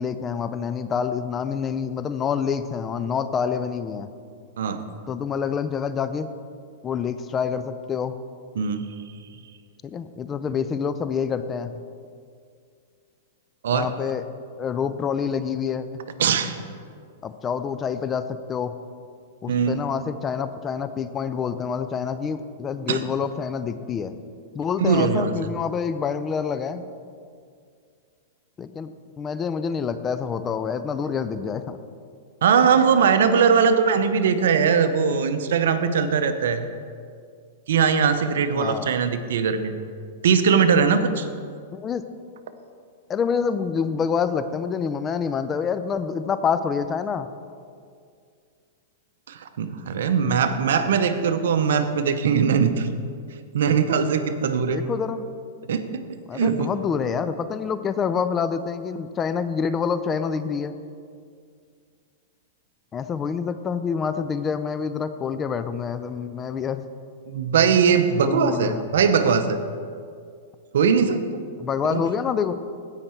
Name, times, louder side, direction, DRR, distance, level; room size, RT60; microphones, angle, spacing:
voice 1, 0.0-4.1 5.1-6.3 6.8-8.1 9.8-11.7 13.7-14.3 14.6-16.0 17.2-18.7 19.4-24.2 24.5-26.9 28.6-31.8 38.5-38.9 41.7-42.0 43.1-47.3 50.6-50.9 54.5-55.3 56.3-60.8 62.9-66.8 68.2-68.8 71.6-72.5, left 6 dB, 20° left, 11 dB, 0.5 m, -27 dB
voice 2, 16.2-16.6 19.5-19.8 22.9-23.0 24.8-25.3 32.4-36.6 37.7-39.7 40.2-41.3 49.3-52.9 53.5-54.8 55.7-56.0 56.3-56.7 67.3-69.6 70.7-71.4 71.9-72.0, right 6 dB, 75° right, 10 dB, 0.8 m, -20 dB
16.0 x 5.7 x 4.4 m, 2.2 s
hypercardioid pair, 130°, 0 cm